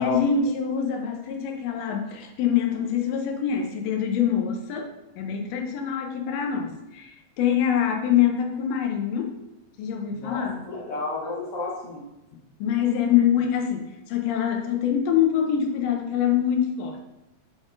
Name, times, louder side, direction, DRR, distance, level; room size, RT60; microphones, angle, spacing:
voice 1, 0.0-4.9 5.2-9.3 9.8-10.6 12.6-17.0, left 8 dB, 90° left, 4 dB, 1.4 m, -24 dB
voice 2, 10.1-12.1, left 3 dB, 60° left, -6 dB, 1.8 m, -31 dB
5.1 x 3.5 x 2.4 m, 0.99 s
omnidirectional pair, 3.5 m